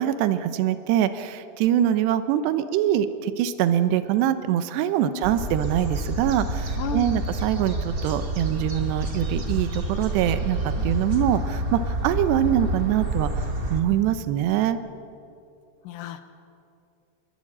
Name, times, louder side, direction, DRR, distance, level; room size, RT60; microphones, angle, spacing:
voice 1, 0.0-13.4 13.7-14.8, right 11 dB, 75° right, 11 dB, 3.0 m, -24 dB
voice 2, 5.0-5.4 6.8-7.2 10.8-10.9 15.8-16.2, left 9 dB, 65° left, 8 dB, 2.2 m, -33 dB
sound 1, 5.2-13.8, right 1 dB, 30° right, 1.9 m, -28 dB
27.0 x 22.0 x 8.8 m, 2.6 s
omnidirectional pair, 5.2 m